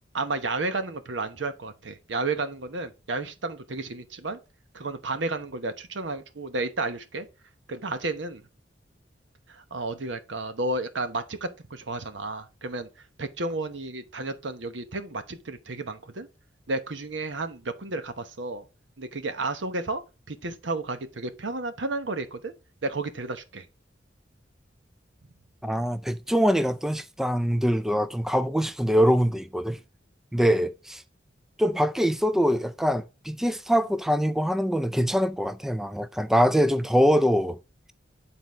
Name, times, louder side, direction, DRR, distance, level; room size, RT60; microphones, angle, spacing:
voice 1, 0.1-4.4 4.7-7.3 7.7-8.4 9.5-12.9 13.2-16.3 16.7-18.7 19.0-20.0 20.3-22.5 22.8-23.7, right 2 dB, 80° right, 1.0 m, -32 dB
voice 2, 25.6-29.8 30.3-31.0 31.6-37.6, equal, ahead, 0.3 m, -23 dB
9.5 x 4.0 x 3.9 m
head